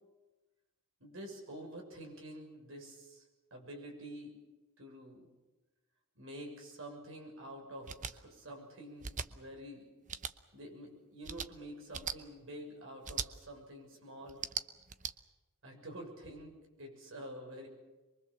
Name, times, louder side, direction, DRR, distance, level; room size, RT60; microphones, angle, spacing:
voice 1, 1.0-3.2 3.5-4.4 4.8-5.3 6.2-9.9 10.5-14.5 15.6-17.7, right 1 dB, 65° right, 2 dB, 6.9 m, -48 dB
sound 1, 7.9-8.1 9.0-9.3 10.1-10.3 11.2-11.5 11.9-12.2 13.0-13.3 14.3-15.1, right 7 dB, 35° right, 0.9 m, -39 dB
23.5 x 23.5 x 7.5 m, 1.1 s
head